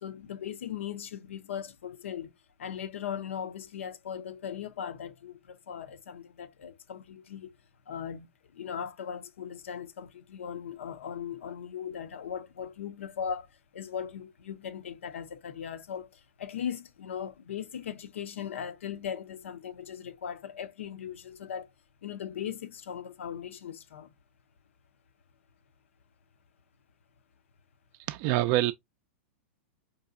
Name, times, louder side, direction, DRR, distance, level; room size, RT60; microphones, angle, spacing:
voice 1, 0.0-2.3 2.6-7.5 7.9-13.5 13.7-21.7 22.0-24.1, left 8 dB, 85° left, 0.5 m, -38 dB
voice 2, 28.1-28.7, right 15 dB, 45° right, 0.3 m, -25 dB
4.7 x 2.6 x 2.5 m
hypercardioid pair, 130°, 7 cm